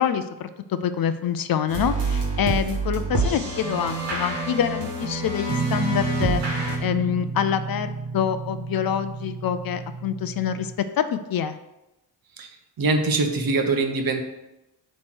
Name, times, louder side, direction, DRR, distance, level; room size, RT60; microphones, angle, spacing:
voice 1, 0.0-6.4 6.8-10.7 11.0-11.6, left 8 dB, 55° left, 11 dB, 0.5 m, -26 dB
sound 1, 1.7-6.8, right 2 dB, 70° right, 1.6 m, -27 dB
Guitar, 5.5-10.7, right 5 dB, 35° right, 0.4 m, -31 dB
voice 2, 12.8-14.2, right 3 dB, 55° right, 5 dB, 0.9 m, -23 dB
7.6 x 3.2 x 6.1 m, 0.94 s
wide cardioid pair, 170°, 43 cm